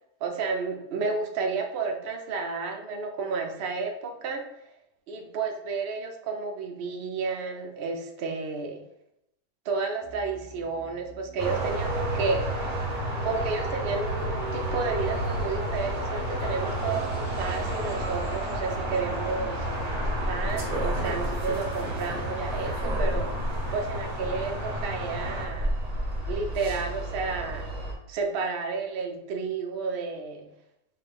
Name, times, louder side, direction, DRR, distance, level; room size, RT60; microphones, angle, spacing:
voice 1, 0.2-4.7 5.1-8.8 9.7-12.5 13.2-19.9 20.3-23.3 23.7-25.7 26.3-27.7 28.1-30.4, right 4 dB, 85° right, 4 dB, 0.5 m, -31 dB
sound 1, 10.0-21.9, left 1 dB, 65° left, 1.3 m, -50 dB
sound 2, 11.4-27.9, right 1 dB, 35° right, 0.7 m, -30 dB
3.6 x 2.5 x 3.3 m, 0.81 s
omnidirectional pair, 1.6 m